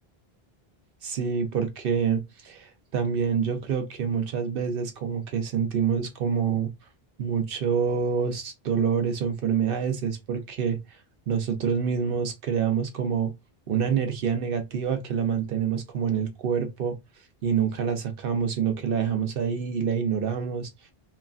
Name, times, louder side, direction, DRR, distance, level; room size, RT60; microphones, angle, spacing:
voice 1, 1.0-6.7 7.2-10.8 11.3-13.3 13.7-17.0 17.4-20.7, right 7 dB, 65° right, 0.8 m, -26 dB
3.0 x 2.3 x 2.3 m
omnidirectional pair, 1.0 m